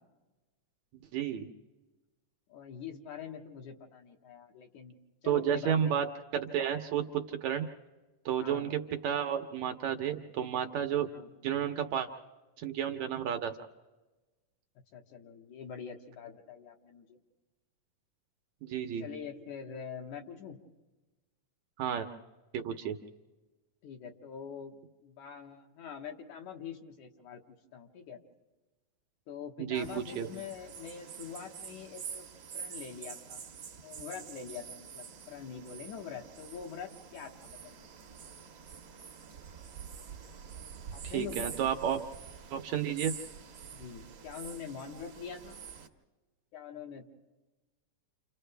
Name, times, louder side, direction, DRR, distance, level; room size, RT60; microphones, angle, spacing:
voice 1, 1.1-1.5 5.2-6.1 6.3-7.7 8.3-11.1 11.4-12.1 12.6-13.5 18.6-19.1 21.8-22.1 22.5-23.0 29.6-30.3 41.1-42.0 42.5-43.1, right 9 dB, 70° right, 5 dB, 2.0 m, -31 dB
voice 2, 2.5-6.0 8.3-8.7 10.9-11.4 14.9-17.2 19.0-20.6 23.8-28.2 29.3-32.3 32.5-33.4 33.8-37.9 40.9-41.5 43.7-45.6 46.5-47.1, left 7 dB, 70° left, 2 dB, 2.8 m, -44 dB
sound 1, 29.7-45.9, right 7 dB, 50° right, 1.5 m, -46 dB
30.0 x 28.0 x 3.4 m, 1.2 s
omnidirectional pair, 3.7 m